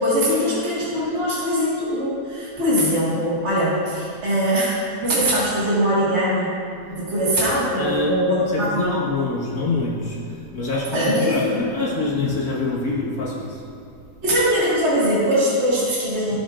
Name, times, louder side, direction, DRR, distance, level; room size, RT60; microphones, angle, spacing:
voice 1, 0.0-4.8 5.0-6.5 6.9-8.9 10.9-11.4 14.2-16.3, equal, 45° right, -9 dB, 2.1 m, -21 dB
voice 2, 7.8-13.6, left 2 dB, 65° left, -6 dB, 2.1 m, -25 dB
15.5 x 6.3 x 2.5 m, 2.5 s
omnidirectional pair, 1.7 m